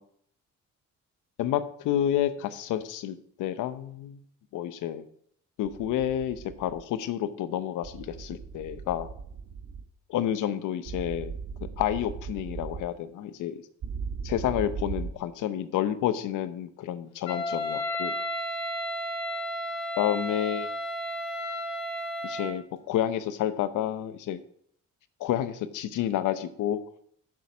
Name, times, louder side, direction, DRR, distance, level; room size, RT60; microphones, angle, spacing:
voice 1, 1.4-4.2 4.5-5.1 5.6-9.1 10.1-11.3 11.8-13.6 14.2-18.1 20.0-20.7 22.2-24.4 25.2-26.8, left 11 dB, 85° left, 12 dB, 0.9 m, -29 dB
sound 1, 5.7-6.8 7.8-9.9 10.9-12.9 13.8-15.1, right 6 dB, 55° right, 1.2 m, -38 dB
Wind instrument woodwind instrument, 17.2-22.6, equal, 65° left, 2.5 m, -33 dB
9.6 x 7.5 x 6.1 m, 0.65 s
cardioid pair, 90°, 30 cm